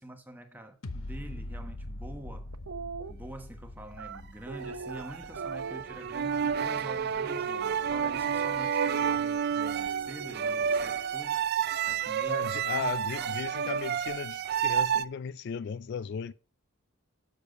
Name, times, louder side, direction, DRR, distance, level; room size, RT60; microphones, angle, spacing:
voice 1, 0.0-2.5 3.1-11.5 11.8-13.3 13.6-13.8, right 1 dB, 10° right, 1.1 m, -46 dB
sound 1, 0.8-7.9 8.3-8.4, left 1 dB, 75° left, 0.9 m, -43 dB
sound 2, 2.5-3.1 3.9-6.8 7.2-8.7 9.9-11.2, right 5 dB, 75° right, 0.7 m, -42 dB
sound 3, 4.5-15.1, right 8 dB, 50° right, 0.4 m, -30 dB
voice 2, 12.3-16.3, left 6 dB, 55° left, 0.3 m, -36 dB
7.1 x 6.6 x 5.2 m
head